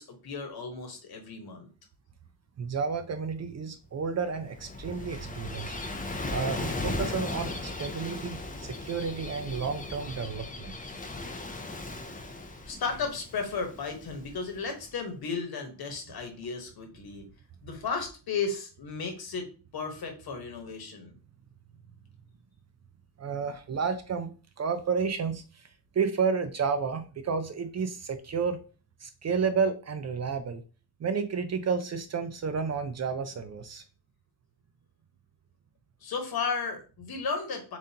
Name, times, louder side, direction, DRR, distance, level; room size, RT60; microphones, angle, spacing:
voice 1, 0.0-1.7 12.7-17.2 17.6-19.5 19.7-21.1 36.0-37.8, left 5 dB, 60° left, 5 dB, 1.2 m, -34 dB
voice 2, 2.6-5.7 6.3-10.8 23.2-25.7 25.9-28.6 29.0-30.6 31.0-33.8, right 5 dB, 40° right, 9 dB, 0.4 m, -31 dB
Gull seagull / Waves surf, 4.3-14.8, left 2 dB, 20° left, 0.4 m, -37 dB
7.1 x 2.6 x 2.8 m, 0.36 s
wide cardioid pair, 165°, 42 cm